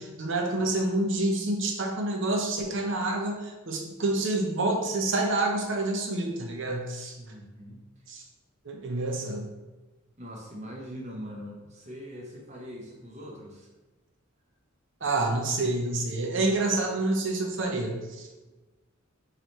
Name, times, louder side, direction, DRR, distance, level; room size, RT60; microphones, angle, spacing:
voice 1, 0.0-7.2 8.1-8.2 8.6-9.5 15.0-18.3, right 2 dB, 60° right, 1 dB, 0.8 m, -28 dB
voice 2, 7.2-7.8 10.2-13.7, equal, 35° right, -1 dB, 0.9 m, -42 dB
3.8 x 3.2 x 4.3 m, 1.1 s
head